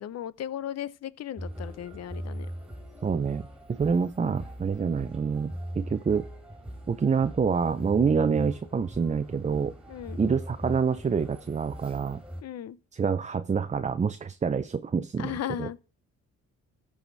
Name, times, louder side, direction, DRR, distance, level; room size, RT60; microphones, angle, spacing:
voice 1, 0.0-2.5 9.9-10.2 12.4-12.8 15.2-15.8, left 11 dB, 55° left, 0.7 m, -36 dB
sound 1, 1.4-12.4, equal, 5° right, 3.7 m, -40 dB
voice 2, 3.0-6.3 6.9-9.7 10.2-12.2 12.9-15.7, right 6 dB, 25° right, 0.6 m, -27 dB
14.0 x 4.9 x 4.0 m
cardioid pair, 90°, 30 cm